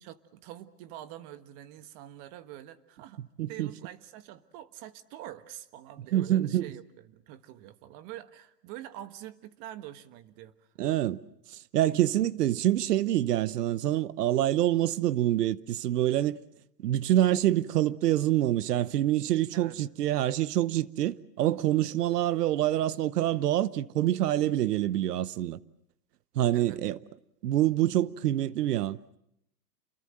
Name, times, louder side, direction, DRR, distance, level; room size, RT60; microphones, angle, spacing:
voice 1, 0.0-3.2 3.5-10.5 19.5-19.8 26.5-26.8, right 13 dB, 35° right, 1.4 m, -46 dB
voice 2, 3.4-3.7 6.1-6.7 10.8-11.2 11.5-16.4 16.8-25.6 26.3-27.0 27.4-29.2, right 13 dB, 70° right, 1.0 m, -26 dB
28.5 x 22.0 x 7.7 m
hypercardioid pair, 135°, 48 cm